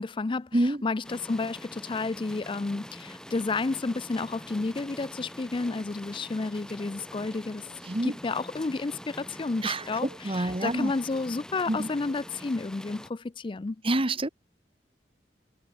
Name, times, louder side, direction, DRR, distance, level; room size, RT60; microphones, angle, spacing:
voice 1, 0.0-7.7 8.0-13.8, left 3 dB, 30° left, 0.4 m, -31 dB
sound 1, 1.0-13.1, equal, 5° left, 2.1 m, -45 dB
sound 2, 4.5-4.8 5.1-8.2 9.3-11.4 11.6-12.4, right 1 dB, 50° right, 6.6 m, -58 dB
voice 2, 7.8-8.2 9.6-9.8 10.2-10.9 11.7-11.9 13.8-14.3, right 1 dB, 30° right, 1.6 m, -27 dB
head